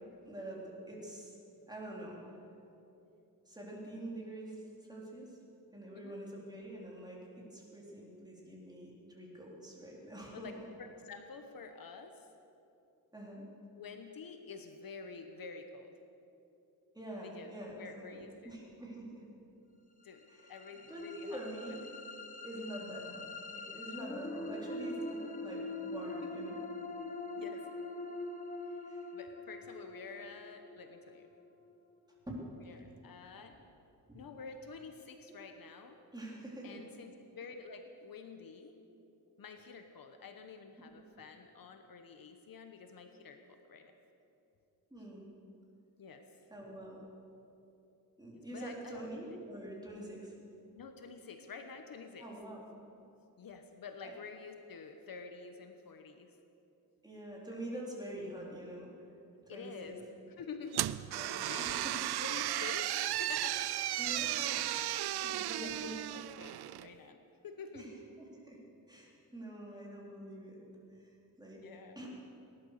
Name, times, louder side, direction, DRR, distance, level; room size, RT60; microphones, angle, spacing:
voice 1, 0.3-1.3 1.7-2.2 3.4-4.6 4.9-5.3 5.7-10.7 13.1-13.5 16.9-19.2 20.3-20.5 20.9-21.9 22.4-26.6 28.9-29.0 32.3-32.4 32.7-32.8 34.1-34.3 35.3-35.4 36.1-36.8 44.9-45.3 46.5-47.0 48.2-50.3 52.2-52.6 54.0-54.1 57.0-58.9 59.5-59.9 61.2-61.9 64.0-64.9 65.2-65.9 67.7-68.6 68.9-71.1 71.4-71.6 72.0-72.1, right 1 dB, 10° right, -4 dB, 3.7 m, -46 dB
voice 2, 10.3-12.3 13.7-15.9 17.2-18.6 20.0-20.2 20.5-21.4 26.1-26.6 27.4-27.7 28.7-28.8 29.1-31.3 32.6-33.5 34.1-36.0 36.6-38.7 39.4-43.9 46.0-46.2 48.3-49.1 50.7-52.2 53.4-56.3 57.5-57.6 59.5-60.0 60.4-60.9 61.4-61.9 62.2-63.7 64.6-64.9 65.1-67.2 67.4-67.9 71.5-72.0, left 5 dB, 60° left, 6 dB, 1.1 m, -49 dB
sound 1, 20.1-32.2, left 2 dB, 20° left, 1.0 m, -43 dB
sound 2, 60.7-66.9, right 14 dB, 80° right, 0.5 m, -35 dB
18.0 x 11.5 x 6.7 m, 2.8 s
wide cardioid pair, 115°, 38 cm